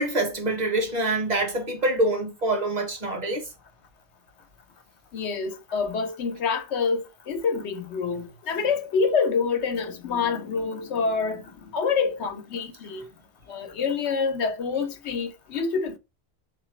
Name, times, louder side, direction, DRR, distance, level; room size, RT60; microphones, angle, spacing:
voice 1, 0.0-3.5, right 2 dB, 40° right, 1.2 m, -25 dB
voice 2, 5.1-13.0 13.5-16.0, left 5 dB, 80° left, 1.0 m, -27 dB
4.1 x 3.0 x 3.1 m
omnidirectional pair, 1.1 m